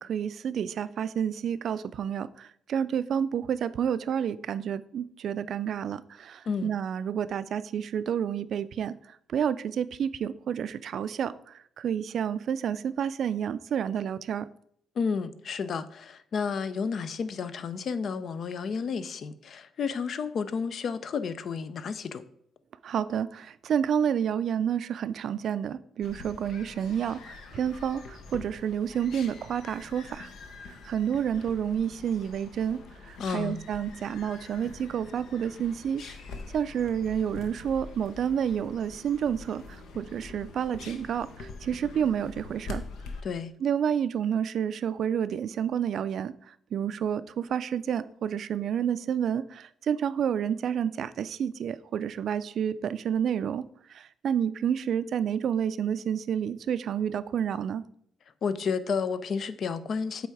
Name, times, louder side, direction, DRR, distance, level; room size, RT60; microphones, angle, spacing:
voice 1, 0.0-8.9 9.3-14.5 22.8-30.3 30.6-32.8 33.1-36.0 36.5-42.8 43.6-53.6 53.9-57.8, right 8 dB, 65° right, 14 dB, 0.3 m, -29 dB
voice 2, 15.0-22.2 33.2-33.6 43.2-43.5 58.4-60.3, left 5 dB, 55° left, 13 dB, 0.5 m, -31 dB
sound 1, 26.0-43.2, left 4 dB, 75° left, 0.9 m, -45 dB
7.9 x 3.5 x 4.6 m, 0.67 s
cardioid pair, 90°, 0 cm